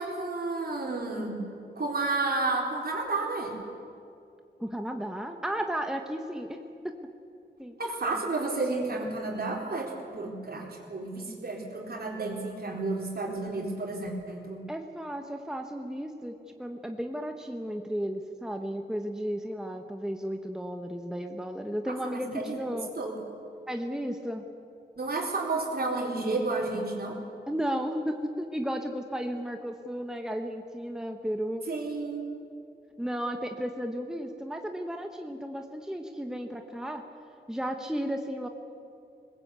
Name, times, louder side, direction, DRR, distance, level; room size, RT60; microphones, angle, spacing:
voice 1, 0.0-1.4 1.8-3.5 7.8-14.6 21.9-23.1 25.0-27.2 31.7-32.3, right 3 dB, 55° right, 0 dB, 4.2 m, -31 dB
voice 2, 4.6-6.6 6.8-6.9 7.6-7.7 14.7-16.3 16.6-22.9 23.7-24.4 27.5-31.6 33.0-37.0 37.5-38.5, equal, 5° right, 4 dB, 1.2 m, -34 dB
22.0 x 20.0 x 8.3 m, 2.6 s
wide cardioid pair, 105°, 18 cm